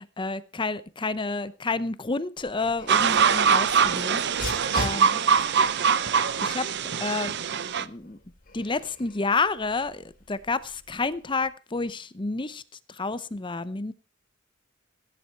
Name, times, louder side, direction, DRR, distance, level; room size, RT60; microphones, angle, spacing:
voice 1, 0.0-5.2 6.4-6.7 7.0-8.2 8.5-12.6 12.9-13.9, left 3 dB, 25° left, 0.7 m, -30 dB
Dog, 2.4-11.4, left 2 dB, 45° left, 4.3 m, -42 dB
sound 1, 2.9-7.8, right 6 dB, 55° right, 0.7 m, -23 dB
16.5 x 10.5 x 4.5 m
head